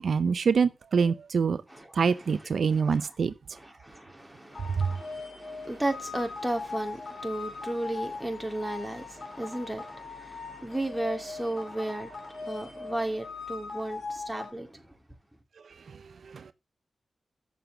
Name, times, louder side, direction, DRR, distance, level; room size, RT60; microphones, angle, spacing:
voice 1, 0.0-1.6 1.9-3.3 16.3-16.5, right 5 dB, 75° right, 0.6 m, -25 dB
voice 2, 1.7-3.2 3.5-14.8, right 1 dB, 10° right, 2.8 m, -35 dB
sound 1, 4.5-14.5, left 4 dB, 50° left, 3.8 m, -40 dB
7.7 x 6.8 x 6.9 m
cardioid pair, 55°, 0 cm